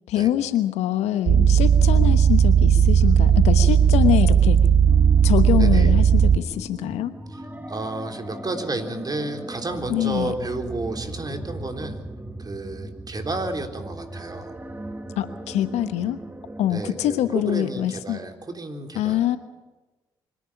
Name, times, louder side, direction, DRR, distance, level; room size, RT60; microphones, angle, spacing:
voice 1, 0.1-4.6 5.2-7.1 9.9-10.3 15.2-16.2 16.6-18.2 19.0-19.4, left 12 dB, 75° left, 12 dB, 1.1 m, -24 dB
sound 1, 1.3-6.4, right 8 dB, 55° right, 0.7 m, -16 dB
voice 2, 3.0-3.5 5.6-5.9 7.3-12.0 12.4-14.6 16.7-19.2, right 2 dB, 35° right, 5 dB, 3.7 m, -32 dB
sound 2, 4.9-17.6, right 1 dB, 15° right, 2.0 m, -38 dB
25.0 x 10.5 x 9.9 m, 1.1 s
hypercardioid pair, 40°, 11 cm